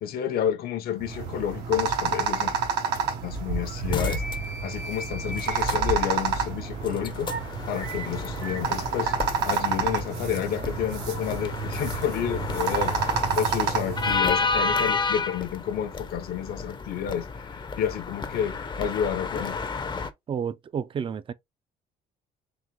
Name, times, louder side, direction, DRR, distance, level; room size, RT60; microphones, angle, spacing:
voice 1, 0.0-2.5 3.2-4.2 4.6-7.4 7.7-9.2 9.4-17.3 17.8-19.6, left 9 dB, 65° left, 0.7 m, -30 dB
sound 1, 1.0-14.2, right 5 dB, 80° right, 1.1 m, -29 dB
sound 2, 1.1-15.0, right 3 dB, 55° right, 1.2 m, -42 dB
sound 3, 2.9-3.0 3.9-4.3 5.4-5.8 6.8-20.1, left 4 dB, 30° left, 0.6 m, -32 dB
voice 2, 20.3-21.3, right 7 dB, 30° right, 0.4 m, -30 dB
4.0 x 3.4 x 3.1 m
cardioid pair, 110°, 17 cm